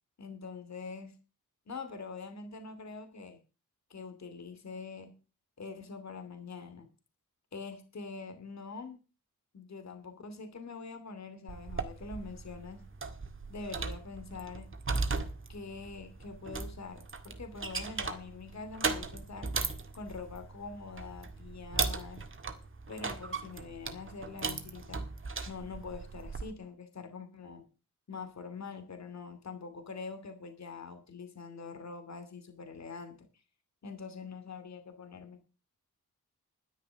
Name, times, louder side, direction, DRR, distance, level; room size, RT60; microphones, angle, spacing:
voice 1, 0.2-1.1 1.7-3.4 3.9-5.1 5.6-6.9 7.5-9.0 9.5-12.8 13.5-14.7 15.5-19.5 19.9-22.2 22.9-25.0 25.5-27.7 28.1-33.3 33.8-35.4, left 4 dB, 55° left, 8 dB, 2.6 m, -44 dB
sound 1, 11.5-26.5, right 4 dB, 40° right, 1.9 m, -38 dB
11.5 x 10.0 x 6.2 m, 0.33 s
wide cardioid pair, 95°, 33 cm